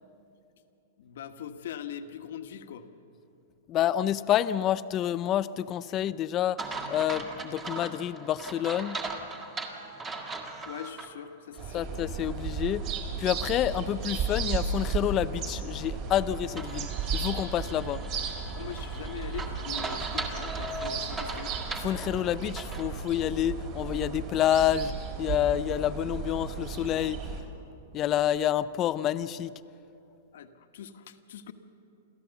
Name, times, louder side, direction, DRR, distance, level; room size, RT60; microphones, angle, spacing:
voice 1, 1.0-2.8 10.6-11.8 18.6-21.5 30.3-31.5, left 8 dB, 70° left, 8 dB, 1.3 m, -41 dB
voice 2, 3.7-9.0 11.7-18.0 21.8-24.9 25.2-27.2 27.9-29.5, left 11 dB, 25° left, 15 dB, 0.5 m, -28 dB
sound 1, 6.6-11.1 11.5-11.6 16.6-22.9, right 3 dB, 15° right, 1.7 m, -38 dB
sound 2, 11.6-27.4, right 5 dB, 40° right, 3.0 m, -34 dB
29.0 x 13.5 x 7.0 m, 2.9 s
hypercardioid pair, 150°, 0 cm